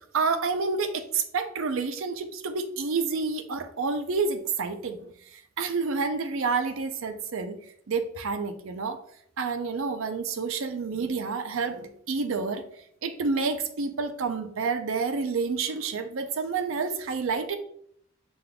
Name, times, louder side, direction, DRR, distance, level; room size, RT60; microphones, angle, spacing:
voice 1, 0.1-7.6 7.9-9.0 9.4-12.6 13.0-17.6, right 4 dB, 65° right, 9 dB, 0.5 m, -29 dB
5.2 x 3.7 x 2.2 m, 0.67 s
head